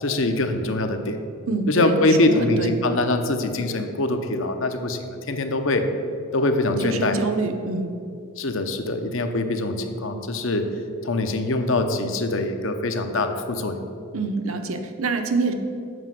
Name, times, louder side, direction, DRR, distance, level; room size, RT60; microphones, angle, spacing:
voice 1, 0.0-1.2 1.7-5.9 6.3-7.2 8.4-10.7 11.0-13.8, left 2 dB, 60° left, 7 dB, 0.8 m, -23 dB
voice 2, 1.5-2.7 6.8-7.9 14.1-15.5, right 3 dB, 70° right, 6 dB, 0.8 m, -26 dB
7.9 x 5.3 x 7.6 m, 2.5 s
head